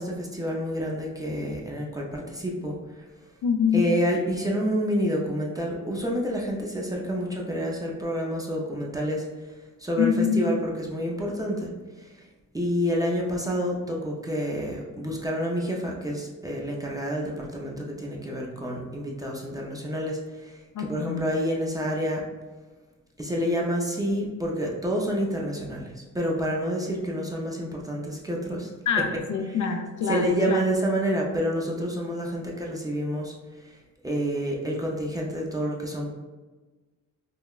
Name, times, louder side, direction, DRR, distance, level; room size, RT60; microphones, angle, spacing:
voice 1, 0.0-3.1 3.7-9.3 9.8-11.7 12.0-12.1 12.5-22.2 23.2-28.7 29.4-29.7 30.0-33.7 34.0-36.1, equal, 10° right, -3 dB, 0.4 m, -28 dB
voice 2, 3.4-3.8 10.0-10.4 20.7-21.3 28.9-30.6, left 6 dB, 65° left, 5 dB, 0.5 m, -25 dB
5.4 x 2.1 x 2.3 m, 1.3 s
wide cardioid pair, 145°, 33 cm